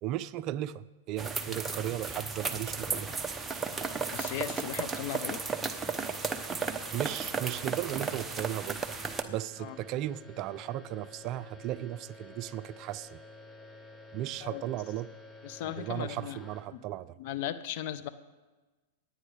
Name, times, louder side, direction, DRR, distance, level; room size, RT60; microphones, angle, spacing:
voice 1, 0.0-3.1 6.9-8.8 9.3-13.2 14.1-15.1 15.6-17.1, right 13 dB, 45° right, 17 dB, 0.4 m, -36 dB
sound 1, 1.2-9.2, right 4 dB, 15° right, 0.8 m, -34 dB
voice 2, 4.1-5.4 9.6-9.8 14.4-14.6 15.4-16.4 16.7-16.8 17.2-18.1, left 11 dB, 55° left, 11 dB, 0.8 m, -37 dB
sound 2, 8.0-16.6, left 2 dB, 15° left, 1.3 m, -50 dB
25.5 x 9.2 x 3.4 m, 1.2 s
hypercardioid pair, 115°, 0 cm